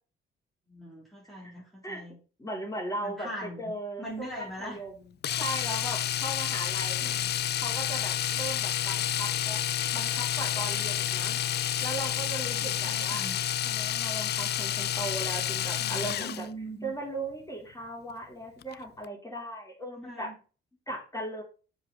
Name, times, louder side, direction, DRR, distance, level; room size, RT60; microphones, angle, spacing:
voice 1, 0.7-2.2 3.0-3.7 4.0-4.8 7.0-7.3 12.5-13.4 15.8-16.9 20.0-20.4, right 1 dB, ahead, -5 dB, 3.7 m, -41 dB
voice 2, 2.4-7.2 7.6-9.6 9.9-13.3 13.6-16.5 16.8-20.3 20.9-21.4, right 1 dB, 15° left, -1 dB, 4.1 m, -38 dB
Domestic sounds home sounds, 5.2-16.5 18.6-18.7 19.0-19.1, left 11 dB, 55° left, 0.5 m, -30 dB
7.3 x 5.0 x 6.4 m, 0.36 s
cardioid pair, 90°, 20 cm